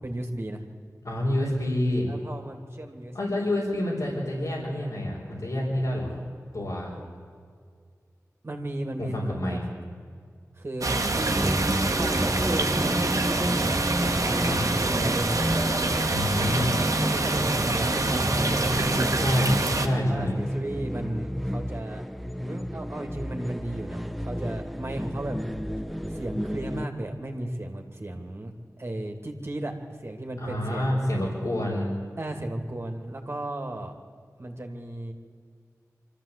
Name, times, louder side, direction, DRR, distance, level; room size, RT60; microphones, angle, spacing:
voice 1, 0.0-0.6 2.1-3.5 8.4-9.6 10.6-11.5 11.9-13.7 14.0-15.5 17.0-19.4 20.1-22.0 22.4-25.4 26.1-31.1 32.2-33.9 34.4-35.1, right 1 dB, 45° right, 3 dB, 2.5 m, -34 dB
voice 2, 1.0-2.1 3.1-6.1 6.5-7.0 9.0-9.6 14.4-14.6 16.1-16.8 19.2-20.4 30.4-31.9, left 1 dB, 75° left, -6 dB, 4.6 m, -28 dB
sound 1, 10.8-19.9, right 2 dB, 65° right, 1.8 m, -26 dB
sound 2, 11.4-26.9, equal, ahead, 0.8 m, -31 dB
25.0 x 13.5 x 8.4 m, 2.1 s
wide cardioid pair, 55°, 6 cm